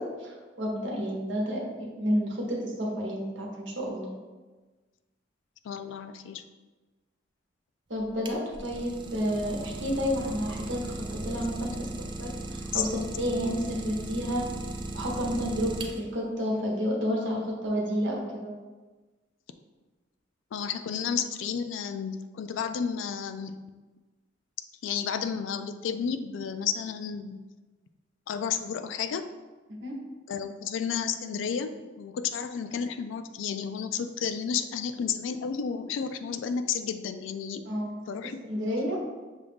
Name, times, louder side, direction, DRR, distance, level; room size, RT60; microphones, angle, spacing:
voice 1, 0.0-4.2 7.9-14.5 14.9-18.5 29.8-30.0 37.7-38.0 38.5-39.0, equal, 75° right, -2 dB, 1.0 m, -30 dB
voice 2, 5.6-6.4 12.7-12.8 20.5-23.6 24.8-27.4 28.3-29.3 30.3-37.6 38.1-38.4, left 7 dB, 85° left, 10 dB, 0.3 m, -32 dB
Idling, 8.0-16.3, right 2 dB, 25° right, 0.3 m, -37 dB
6.1 x 2.4 x 3.5 m, 1.3 s
head